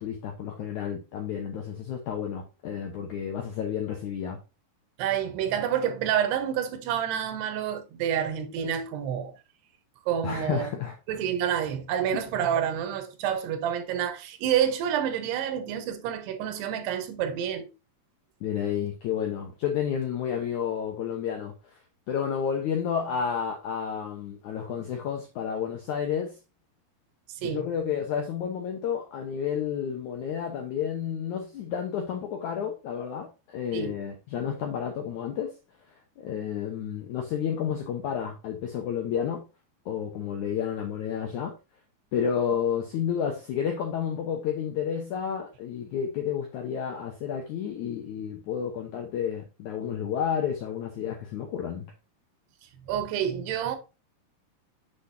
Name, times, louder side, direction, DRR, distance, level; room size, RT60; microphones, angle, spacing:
voice 1, 0.0-4.4 10.2-11.0 18.4-21.5 22.1-26.4 27.4-35.5 36.2-39.4 39.9-41.5 42.1-51.9, left 8 dB, 75° left, 1.7 m, -31 dB
voice 2, 5.0-9.3 10.1-10.7 11.1-17.7 27.4-27.7 33.7-34.0 52.9-53.8, right 9 dB, 80° right, 3.1 m, -28 dB
7.8 x 6.8 x 2.6 m
omnidirectional pair, 4.7 m